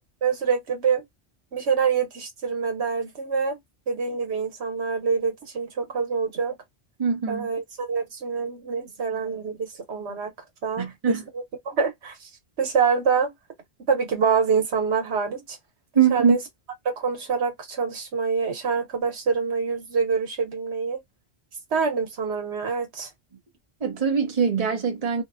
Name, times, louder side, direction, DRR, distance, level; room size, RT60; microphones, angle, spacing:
voice 1, 0.2-1.0 1.5-3.6 3.9-6.5 7.3-10.3 10.6-12.2 12.6-13.3 13.9-15.6 16.1-16.4 16.8-21.0 21.7-23.1, right 5 dB, 90° right, 1.3 m, -26 dB
voice 2, 7.0-7.5 10.8-11.2 15.9-16.4 23.8-25.2, right 6 dB, 35° right, 0.9 m, -22 dB
2.7 x 2.2 x 2.4 m
omnidirectional pair, 1.1 m